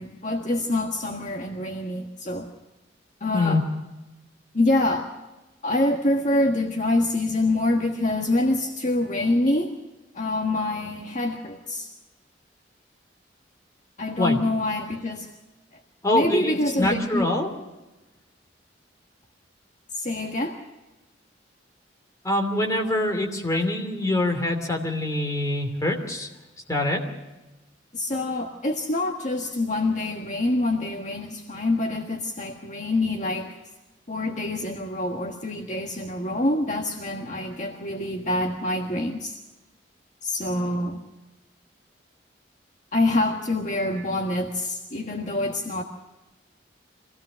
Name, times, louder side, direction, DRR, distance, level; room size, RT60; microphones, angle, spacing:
voice 1, 0.0-2.5 3.2-3.6 4.5-5.1 5.6-9.7 10.1-11.9 14.0-15.3 16.1-17.3 19.9-20.6 23.5-23.7 27.9-33.6 34.1-39.4 40.2-41.0 42.9-45.8, left 2 dB, 40° left, 2 dB, 1.5 m, -26 dB
voice 2, 16.0-17.5 22.2-26.3 26.7-27.0, left 1 dB, 15° left, 2 dB, 2.8 m, -24 dB
24.5 x 17.0 x 6.3 m, 1.1 s
head